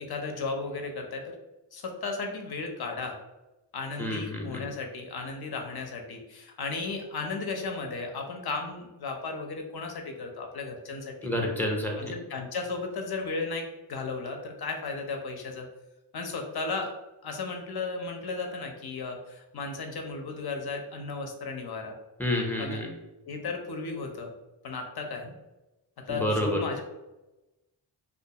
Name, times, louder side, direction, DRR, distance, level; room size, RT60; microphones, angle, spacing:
voice 1, 0.0-1.3 1.7-3.2 3.7-11.3 12.0-15.7 16.1-16.9 17.2-22.0 22.6-22.8 23.3-24.3 24.6-25.3 26.1-26.8, left 3 dB, 55° left, 3 dB, 0.6 m, -35 dB
voice 2, 4.0-4.7 11.2-12.1 22.2-22.9 26.1-26.6, left 1 dB, 5° left, 0 dB, 0.5 m, -29 dB
2.5 x 2.3 x 2.7 m, 1.0 s
cardioid pair, 60°, 47 cm